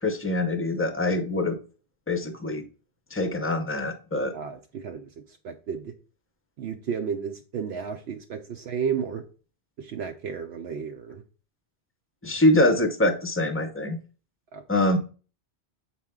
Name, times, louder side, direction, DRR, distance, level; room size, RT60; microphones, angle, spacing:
voice 1, 0.0-1.6 2.1-2.7 3.1-4.3 12.2-14.0 14.7-15.0, left 1 dB, 15° left, 8 dB, 0.6 m, -24 dB
voice 2, 4.3-5.9 6.6-9.2 9.8-11.2 14.5-14.8, right 7 dB, 75° right, 5 dB, 0.8 m, -33 dB
6.7 x 4.4 x 3.6 m, 0.37 s
omnidirectional pair, 1.1 m